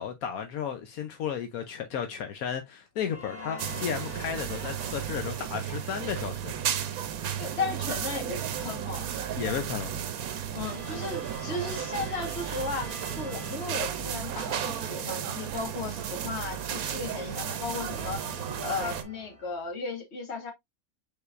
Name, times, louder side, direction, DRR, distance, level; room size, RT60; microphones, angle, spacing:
voice 1, 0.0-6.5 9.4-10.0, left 8 dB, 80° left, 1.2 m, -34 dB
sound 1, 3.0-5.5 10.5-14.5 17.3-19.8, equal, 25° left, 1.8 m, -45 dB
sound 2, 3.6-19.0, right 9 dB, 80° right, 1.2 m, -34 dB
voice 2, 7.4-9.1 10.5-18.2 18.6-20.5, left 4 dB, 50° left, 1.7 m, -35 dB
5.5 x 3.9 x 2.5 m
omnidirectional pair, 1.5 m